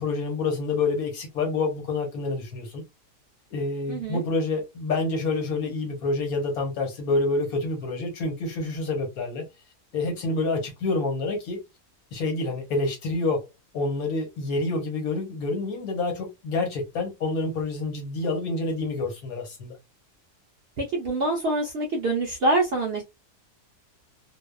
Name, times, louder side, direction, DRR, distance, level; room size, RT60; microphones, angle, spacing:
voice 1, 0.0-2.8 3.5-9.4 9.9-11.6 12.1-13.4 13.7-19.7, left 3 dB, 75° left, 1.4 m, -27 dB
voice 2, 3.9-4.2 20.8-23.0, right 2 dB, 60° right, 0.6 m, -25 dB
2.7 x 2.2 x 2.2 m
omnidirectional pair, 1.6 m